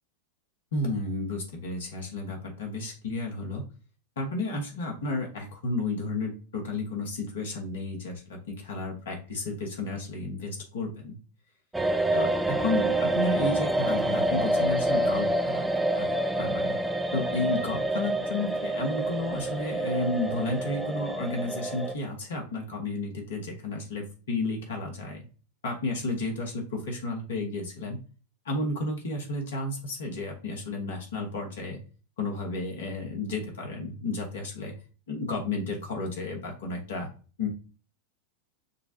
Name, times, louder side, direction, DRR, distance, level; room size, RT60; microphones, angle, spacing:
voice 1, 0.7-3.6 4.2-11.2 12.1-16.1 16.4-16.8 17.1-25.2 25.6-28.0 28.4-31.8 32.2-34.7 35.1-37.1 37.4-37.5, left 2 dB, 65° left, 2 dB, 1.2 m, -32 dB
sound 1, 11.7-21.9, right 1 dB, 5° right, 0.4 m, -27 dB
6.7 x 2.3 x 2.7 m, 0.36 s
figure-of-eight pair, 90°, 0 cm